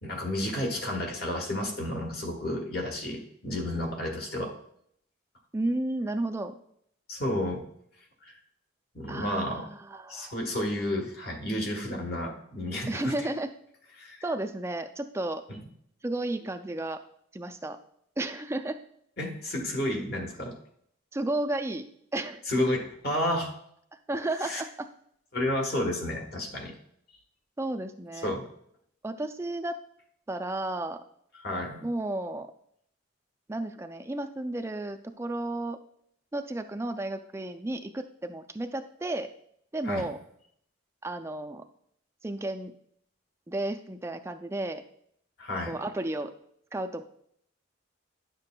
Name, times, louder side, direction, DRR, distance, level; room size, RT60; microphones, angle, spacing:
voice 1, 0.0-4.5 7.1-7.6 8.2-8.3 8.9-9.7 10.1-13.1 14.0-14.2 15.5-15.6 19.2-20.6 22.5-23.5 24.4-24.6 25.3-26.7 28.2-28.4 31.4-31.8 39.8-40.1 45.4-45.7, left 1 dB, 50° left, 2 dB, 1.2 m, -31 dB
voice 2, 5.5-6.6 9.1-10.3 12.9-13.5 14.2-15.4 16.0-17.0 17.3-17.8 18.2-18.8 21.1-21.9 22.1-22.4 23.9-24.9 27.6-28.3 29.0-29.8 30.3-31.0 31.8-32.5 33.5-35.8 36.3-39.3 39.7-40.2 41.0-41.6 42.2-42.7 43.5-44.8 45.7-46.3 46.7-47.0, right 2 dB, 15° right, 8 dB, 0.3 m, -33 dB
10.5 x 6.6 x 2.2 m, 0.70 s
head